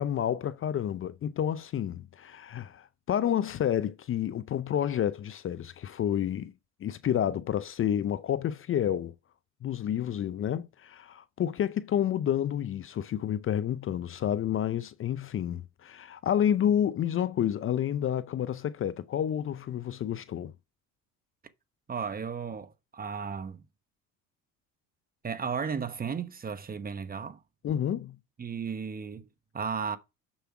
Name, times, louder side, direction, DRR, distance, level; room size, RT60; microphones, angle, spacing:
voice 1, 0.0-6.5 6.8-9.1 9.6-20.5 27.6-28.2, left 10 dB, 40° left, 0.5 m, -29 dB
voice 2, 21.9-23.6 25.2-27.4 28.4-29.3 29.5-30.0, right 6 dB, 25° right, 1.0 m, -34 dB
7.2 x 7.0 x 4.7 m
supercardioid pair, 85°, 34 cm